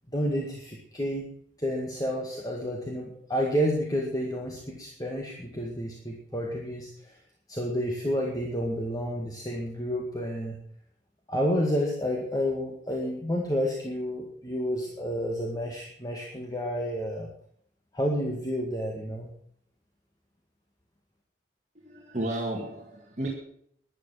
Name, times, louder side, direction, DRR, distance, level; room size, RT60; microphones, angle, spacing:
voice 1, 0.1-1.3 1.6-7.2 7.5-10.6 11.3-17.3 17.9-19.3, equal, 20° left, 0 dB, 2.0 m, -30 dB
voice 2, 21.7-23.3, right 1 dB, 40° right, -2 dB, 2.2 m, -33 dB
12.0 x 11.0 x 7.5 m, 0.66 s
head